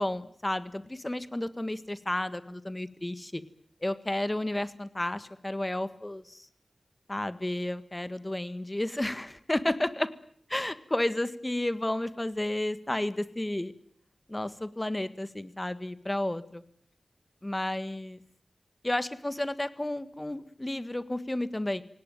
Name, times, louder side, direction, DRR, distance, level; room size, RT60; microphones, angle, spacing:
voice 1, 0.0-3.4 3.8-6.5 7.1-10.1 10.5-13.7 14.3-16.6 17.4-18.2 18.8-21.8, left 1 dB, 20° left, 14 dB, 1.6 m, -32 dB
27.5 x 18.0 x 9.2 m, 0.64 s
wide cardioid pair, 85°, 0 cm